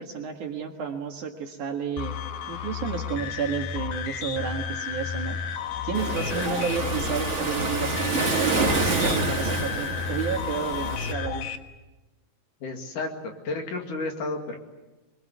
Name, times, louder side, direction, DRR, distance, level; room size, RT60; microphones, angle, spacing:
voice 1, 0.0-2.2 2.5-5.4 5.8-11.5, right 7 dB, 60° right, 3 dB, 2.8 m, -31 dB
sound 1, 2.0-11.6, left 7 dB, 75° left, 3.3 m, -32 dB
Waves surf, 5.9-11.1, right 3 dB, 40° right, 1.0 m, -28 dB
voice 2, 12.6-14.6, left 3 dB, 55° left, 3 dB, 3.6 m, -32 dB
25.5 x 23.0 x 8.3 m, 1.1 s
omnidirectional pair, 4.6 m